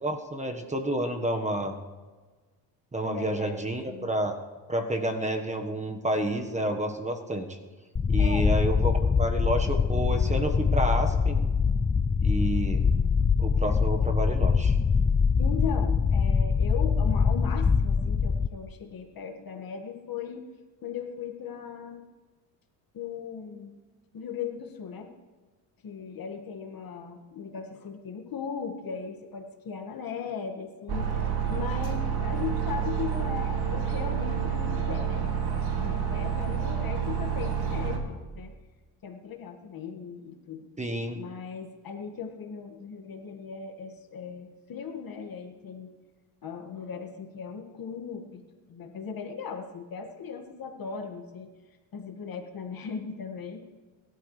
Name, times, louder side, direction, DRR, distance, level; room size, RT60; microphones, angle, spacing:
voice 1, 0.0-1.7 2.9-4.3 4.7-7.6 8.1-11.4 12.2-12.8 13.4-14.7 40.8-41.2, right 1 dB, 15° right, 5 dB, 1.4 m, -29 dB
voice 2, 3.0-4.1 8.2-8.5 15.4-20.4 20.8-22.0 22.9-23.7 24.1-25.1 25.8-35.3 35.7-38.5 39.0-40.7 41.1-46.0 46.4-48.4 48.7-51.5 51.9-53.7, left 6 dB, 45° left, 4 dB, 2.0 m, -38 dB
sound 1, 8.0-18.5, left 5 dB, 15° left, 0.4 m, -24 dB
sound 2, 30.9-38.0, right 7 dB, 55° right, 2.6 m, -29 dB
22.5 x 12.5 x 3.3 m, 1.3 s
supercardioid pair, 80°, 47 cm